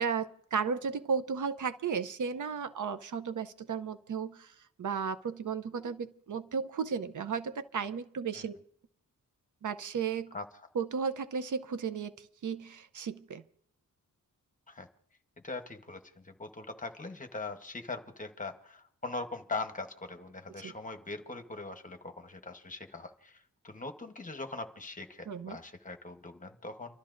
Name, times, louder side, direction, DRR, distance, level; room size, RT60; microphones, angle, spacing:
voice 1, 0.0-8.6 9.6-10.3 10.7-13.4 20.6-20.7 25.3-25.6, right 6 dB, 65° right, 0.6 m, -34 dB
voice 2, 15.4-27.0, left 3 dB, 25° left, 1.0 m, -41 dB
30.0 x 13.0 x 2.6 m
wide cardioid pair, 170°, 33 cm